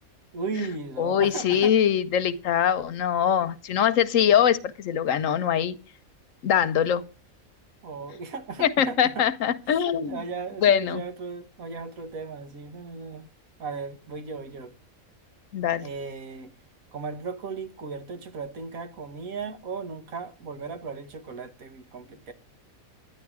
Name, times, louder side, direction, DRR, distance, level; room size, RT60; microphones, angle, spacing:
voice 1, 0.3-1.7 7.8-9.3 9.9-13.3 13.6-14.7 15.8-16.5 16.9-22.3, right 4 dB, 80° right, 1.7 m, -36 dB
voice 2, 1.0-5.8 6.4-7.0 8.6-10.2 10.6-11.0 15.5-15.9, left 9 dB, 70° left, 1.1 m, -23 dB
10.5 x 10.5 x 4.8 m
omnidirectional pair, 1.4 m